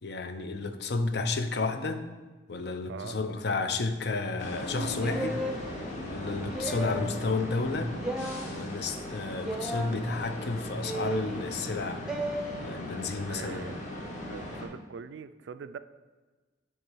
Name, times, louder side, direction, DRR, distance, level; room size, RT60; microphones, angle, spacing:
voice 1, 0.0-2.1 2.5-5.4 6.0-7.9 8.5-12.0 12.6-13.7, left 3 dB, 55° left, 9 dB, 0.6 m, -31 dB
voice 2, 2.9-3.2 13.3-13.8 14.3-15.8, right 6 dB, 65° right, 12 dB, 0.3 m, -42 dB
sound 1, 4.4-14.7, left 1 dB, 40° left, 1.3 m, -38 dB
sound 2, 5.0-5.6 6.5-7.1 8.0-8.5 9.4-9.9 10.8-11.3 12.1-12.4, right 1 dB, 5° right, 0.6 m, -33 dB
8.2 x 3.6 x 6.1 m, 1.3 s
head